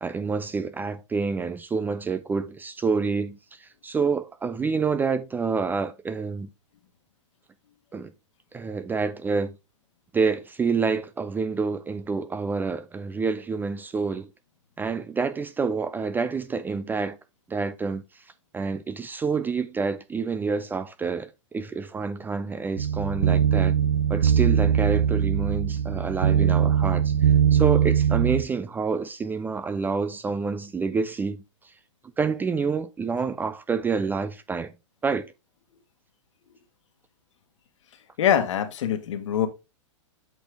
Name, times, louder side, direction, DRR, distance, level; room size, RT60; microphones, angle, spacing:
voice 1, 0.0-6.5 7.9-8.1 8.5-9.6 10.1-14.3 14.8-17.2 17.5-18.2 18.5-23.8 24.1-31.7 32.2-34.7 35.0-35.3, right 5 dB, 10° right, 0.4 m, -28 dB
sound 1, 22.8-28.4, right 8 dB, 85° right, 0.6 m, -21 dB
voice 2, 38.2-39.5, left 9 dB, 70° left, 1.5 m, -23 dB
8.1 x 4.2 x 3.4 m
hypercardioid pair, 120°, 16 cm